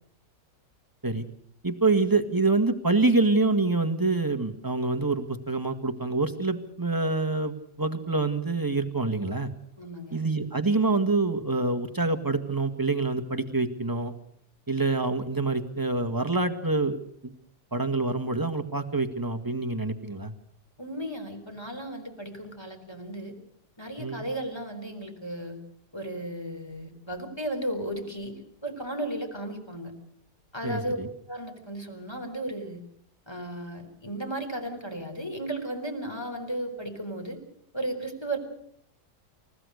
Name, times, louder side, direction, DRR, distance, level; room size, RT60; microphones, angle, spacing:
voice 1, 1.6-9.5 10.1-14.1 14.7-17.3 17.7-20.3 24.0-24.2 30.6-31.1, right 3 dB, 10° right, 7 dB, 1.7 m, -26 dB
voice 2, 9.8-10.2 20.8-23.3 23.8-25.6 25.9-29.9 30.5-31.0 31.3-32.8 33.3-37.4 37.7-38.4, right 1 dB, 15° left, 4 dB, 4.2 m, -35 dB
29.0 x 16.0 x 6.5 m, 0.71 s
omnidirectional pair, 1.8 m